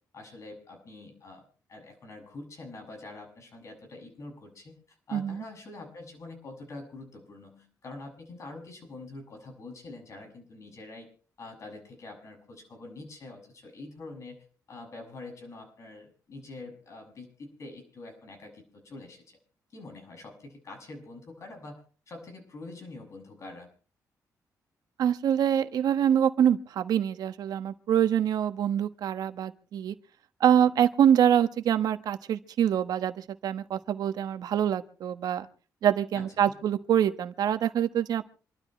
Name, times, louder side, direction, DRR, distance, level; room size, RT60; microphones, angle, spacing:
voice 1, 0.1-4.7 5.1-11.1 11.4-14.4 14.7-19.4 19.7-21.8 22.1-23.7 36.1-36.6, left 2 dB, 50° left, 3 dB, 7.2 m, -45 dB
voice 2, 5.1-5.4 25.0-29.9 30.4-35.5 35.8-38.2, right 9 dB, 80° right, 10 dB, 1.3 m, -25 dB
27.0 x 13.0 x 3.3 m, 0.40 s
cardioid pair, 115°, 7 cm